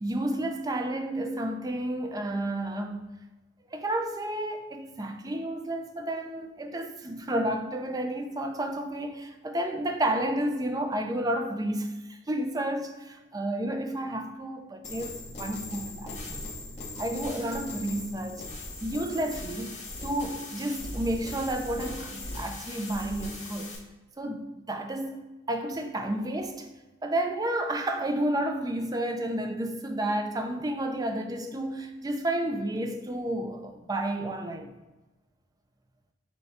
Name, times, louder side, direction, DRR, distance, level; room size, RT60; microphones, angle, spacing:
voice 1, 0.0-3.1 3.7-16.5 17.0-18.5 18.8-23.8 24.2-26.7 27.0-34.7, right 1 dB, 20° right, 0.4 m, -31 dB
sound 1, 14.8-23.8, left 2 dB, 40° left, 1.1 m, -39 dB
5.6 x 2.3 x 4.1 m
head